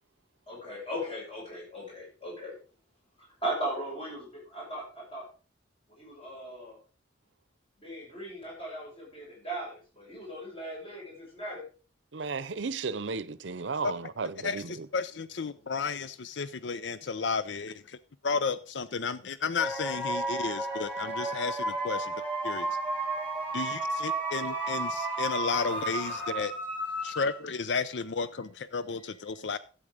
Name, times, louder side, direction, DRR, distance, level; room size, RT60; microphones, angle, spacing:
voice 1, 0.5-2.5 3.4-5.2 5.9-6.8 7.8-11.6, right 1 dB, 30° left, 6.8 m, -38 dB
voice 2, 12.1-14.9, right 4 dB, 75° right, 0.7 m, -34 dB
voice 3, 14.4-18.0 18.2-22.7 23.5-26.5 27.0-29.6, left 5 dB, 65° left, 0.6 m, -33 dB
sound 1, 19.6-27.7, right 2 dB, 10° left, 3.3 m, -33 dB
12.0 x 8.6 x 5.1 m
head